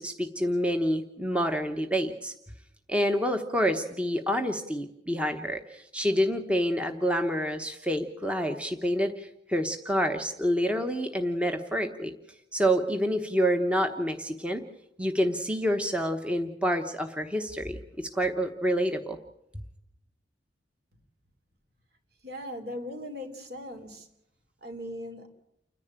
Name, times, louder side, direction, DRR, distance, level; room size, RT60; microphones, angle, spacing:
voice 1, 0.0-2.3 2.9-12.1 12.5-14.6 15.0-19.2, equal, 5° right, 5 dB, 1.0 m, -28 dB
voice 2, 22.2-24.1 24.6-25.3, left 1 dB, 60° right, 5 dB, 3.2 m, -39 dB
29.5 x 10.5 x 8.9 m, 0.79 s
head